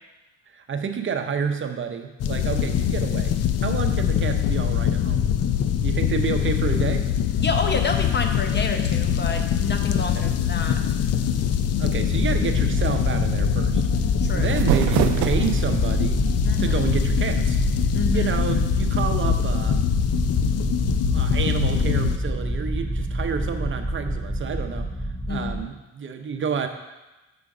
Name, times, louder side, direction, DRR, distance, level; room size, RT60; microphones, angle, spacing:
voice 1, 0.5-5.3 5.8-7.1 10.0-10.3 11.6-13.8 14.3-16.2 16.6-17.6 18.1-19.8 21.1-24.9 25.3-26.7, right 6 dB, 40° right, 6 dB, 0.8 m, -29 dB
sound 1, 2.2-22.2, left 9 dB, 55° left, 0.5 m, -23 dB
voice 2, 7.4-10.8 14.2-14.6 16.4-17.0 17.9-18.3 25.3-25.7, left 4 dB, 35° left, 5 dB, 0.9 m, -29 dB
sound 2, 12.1-25.7, right 1 dB, 5° right, 0.5 m, -27 dB
sound 3, 14.3-15.9, right 11 dB, 85° right, 0.5 m, -24 dB
6.9 x 5.0 x 4.9 m, 1.1 s
cardioid pair, 90°, 30 cm